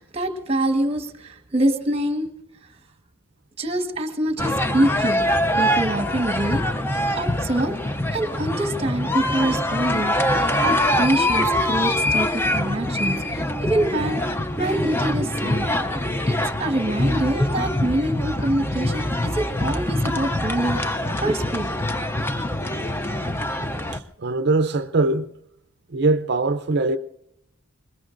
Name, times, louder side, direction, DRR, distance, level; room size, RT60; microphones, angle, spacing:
voice 1, 0.0-2.3 3.6-5.3 5.5-6.6 7.1-14.2 14.6-15.7 16.3-21.9, right 1 dB, 30° right, 1.3 m, -25 dB
sound 1, 4.4-24.0, left 1 dB, 10° left, 0.5 m, -24 dB
voice 2, 23.9-25.3 25.9-27.0, right 3 dB, 50° right, 0.5 m, -22 dB
26.0 x 21.0 x 2.6 m
head